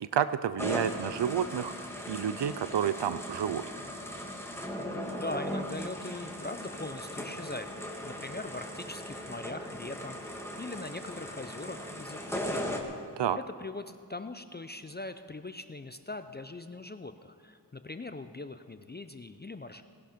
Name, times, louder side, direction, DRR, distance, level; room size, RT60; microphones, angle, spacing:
voice 1, 0.0-1.7 2.1-3.6 13.2-13.4, right 9 dB, 85° right, 13 dB, 0.5 m, -30 dB
sound 1, 0.6-12.8, equal, 5° left, 1.7 m, -38 dB
voice 2, 5.2-7.7 8.0-12.8 13.4-19.8, left 2 dB, 25° left, 10 dB, 0.5 m, -41 dB
18.5 x 11.0 x 5.1 m, 2.2 s
wide cardioid pair, 50°, 41 cm